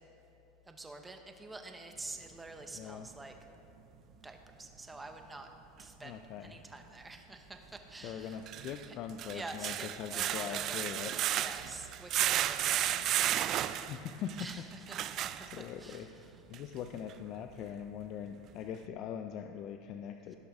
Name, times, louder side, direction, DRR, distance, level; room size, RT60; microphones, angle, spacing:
voice 1, 0.7-3.3 4.2-5.5 5.8-8.4 8.9-9.0 9.3-10.9 11.3-12.8 14.4-15.3 15.8-16.2, right 2 dB, 10° right, 5 dB, 0.8 m, -47 dB
voice 2, 2.7-3.1 6.0-6.6 8.0-11.2 12.9-13.3 13.9-14.6 15.4-16.1 16.5-20.4, left 8 dB, 50° left, 6 dB, 0.4 m, -42 dB
sound 1, 5.8-5.9 8.3-16.0 16.5-16.6 17.1-17.2, right 12 dB, 45° right, 0.3 m, -33 dB
16.0 x 6.2 x 3.5 m, 2.9 s
supercardioid pair, 125°, 0 cm